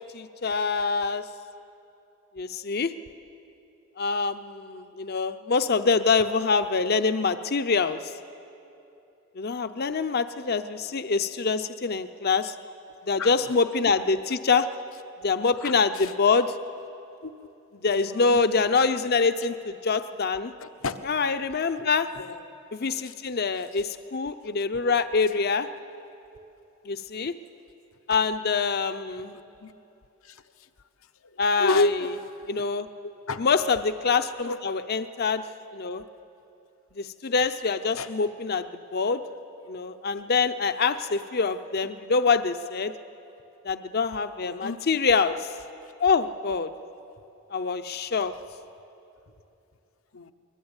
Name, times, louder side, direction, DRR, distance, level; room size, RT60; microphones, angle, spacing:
voice 1, 0.1-1.3 2.4-2.9 4.0-8.0 9.4-12.6 13.1-14.7 15.2-16.5 17.8-20.5 21.0-22.1 22.7-25.7 26.9-27.3 28.1-29.3 31.4-31.9 32.5-32.9 33.4-35.4 35.7-36.0 37.0-38.7 38.9-39.2 39.7-42.9 43.6-45.4 46.0-46.7 47.5-48.3, left 4 dB, 50° left, 10 dB, 0.6 m, -25 dB
voice 2, 15.6-16.1 17.2-17.3 17.9-18.4 20.6-21.1 21.8-21.9 22.2-22.4 23.0-23.1 29.6-29.7 30.2-30.4 31.2-32.7 33.0-33.5 34.4-34.6 38.0-38.1 44.4-44.8 50.1-50.3, left 2 dB, 80° left, 9 dB, 1.0 m, -31 dB
23.5 x 20.5 x 8.9 m, 2.8 s
head